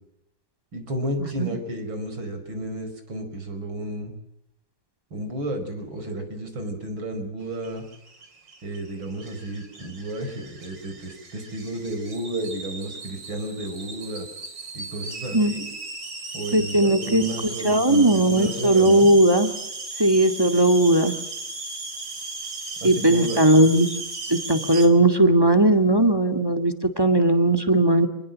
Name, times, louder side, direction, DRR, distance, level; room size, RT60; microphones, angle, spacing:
voice 1, 0.7-4.1 5.1-7.9 8.6-14.3 14.7-15.7 16.3-19.1 22.8-23.4, right 1 dB, 80° right, 6 dB, 6.0 m, -32 dB
sound 1, 7.5-24.9, right 3 dB, 60° right, 4.3 m, -36 dB
voice 2, 16.5-17.2 17.6-19.5 20.0-21.1 22.8-24.0 24.3-28.1, right 1 dB, 10° right, 7 dB, 2.2 m, -18 dB
27.5 x 21.0 x 7.7 m, 0.83 s
omnidirectional pair, 2.1 m